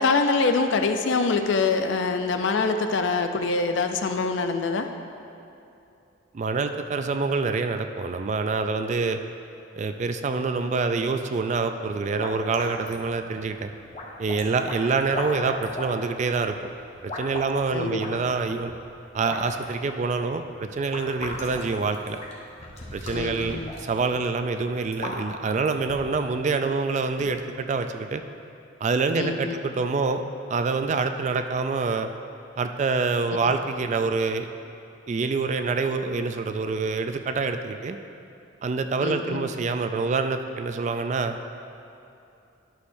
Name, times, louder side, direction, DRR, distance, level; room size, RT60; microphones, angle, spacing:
voice 1, 0.0-4.9 17.7-18.0 23.1-23.7 29.1-29.6 33.3-33.4 39.0-39.5, left 4 dB, 70° left, 7 dB, 0.5 m, -24 dB
voice 2, 6.3-9.2 9.8-13.7 14.2-16.5 17.0-18.7 19.1-22.2 22.9-28.2 28.8-30.2 30.5-32.1 32.6-34.5 35.1-38.0 38.6-41.4, right 4 dB, 35° right, 8 dB, 0.3 m, -26 dB
sound 1, 11.8-26.3, left 1 dB, 35° left, 1.0 m, -38 dB
11.5 x 6.4 x 2.6 m, 2.7 s
head